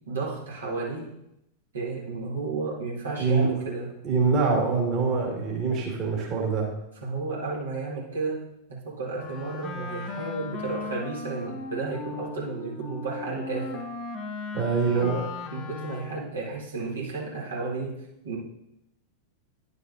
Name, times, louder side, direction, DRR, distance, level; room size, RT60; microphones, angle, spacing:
voice 1, 0.1-1.1 1.7-3.9 4.5-4.8 5.4-5.5 7.0-13.8 14.8-18.4, right 3 dB, 70° right, -5 dB, 1.7 m, -33 dB
voice 2, 3.2-3.5 4.0-6.7 14.5-15.2, right 4 dB, 35° right, 0 dB, 1.7 m, -24 dB
Wind instrument woodwind instrument, 9.1-16.4, left 4 dB, 35° left, 0.7 m, -37 dB
10.5 x 6.8 x 2.6 m, 0.82 s
figure-of-eight pair, 90°, 0 cm